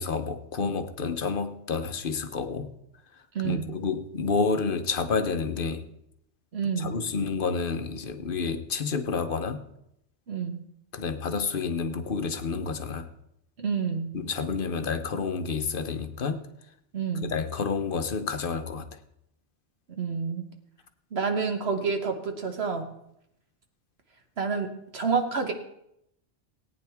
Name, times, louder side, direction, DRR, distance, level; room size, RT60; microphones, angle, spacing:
voice 1, 0.0-2.7 3.4-5.9 6.8-9.6 10.9-13.1 14.1-16.4 17.2-18.9, left 5 dB, 50° left, 8 dB, 1.0 m, -29 dB
voice 2, 3.3-3.7 6.5-7.0 10.3-10.6 13.6-14.1 16.9-17.3 19.9-20.5 21.1-22.9 24.4-25.5, right 5 dB, 60° right, 5 dB, 1.4 m, -29 dB
18.0 x 9.4 x 3.5 m, 0.79 s
omnidirectional pair, 1.2 m